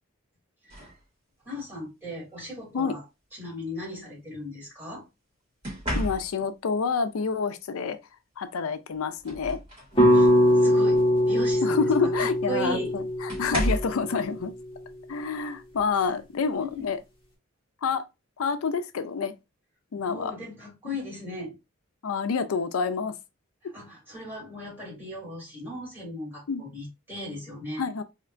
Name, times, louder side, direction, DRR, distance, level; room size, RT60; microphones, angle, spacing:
sound 1, 0.7-1.0 2.3-2.6 5.6-6.6 8.4-8.5 8.9-10.0 10.5-10.8 12.1-12.2 13.3-14.0 15.7-15.9 16.4-16.7, equal, 25° right, 2.0 m, -32 dB
voice 1, 1.4-3.0 3.3-5.0 10.1-11.9 12.1-13.0 16.1-16.2 16.5-16.9 20.0-21.6 23.6-27.8, equal, 10° right, 2.5 m, -37 dB
voice 2, 5.9-8.0 8.4-9.6 11.6-14.5 15.1-17.0 17.8-18.0 18.4-19.3 19.9-20.3 22.0-23.1 26.5-26.7 27.8-28.0, left 5 dB, 90° left, 0.4 m, -28 dB
sound 2, 10.0-14.2, equal, 25° left, 1.1 m, -22 dB
4.3 x 2.8 x 2.4 m
head